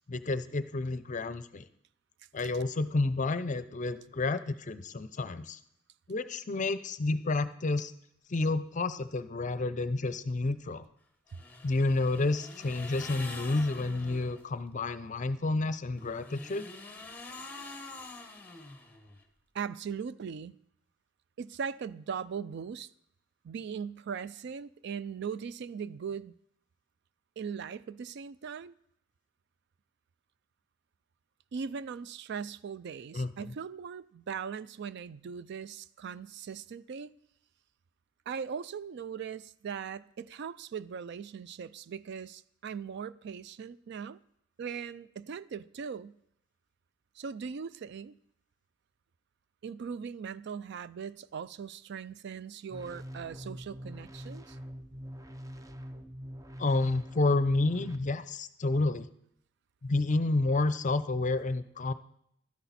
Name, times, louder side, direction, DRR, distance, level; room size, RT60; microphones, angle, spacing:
voice 1, 0.1-1.6 2.3-5.6 6.1-7.9 8.3-10.8 11.6-16.7 33.1-33.5 56.6-59.1 59.8-61.9, left 2 dB, 40° left, 0.6 m, -30 dB
sound 1, 11.3-14.4 15.9-19.2, left 3 dB, 10° left, 1.1 m, -46 dB
voice 2, 19.5-20.6 21.4-22.9 23.4-26.3 27.4-28.7 31.5-37.1 38.3-44.2 44.6-46.2 47.2-48.2 49.6-54.6, right 6 dB, 60° right, 0.4 m, -39 dB
sound 2, 52.7-58.0, equal, 15° right, 0.6 m, -44 dB
12.0 x 10.0 x 4.1 m
head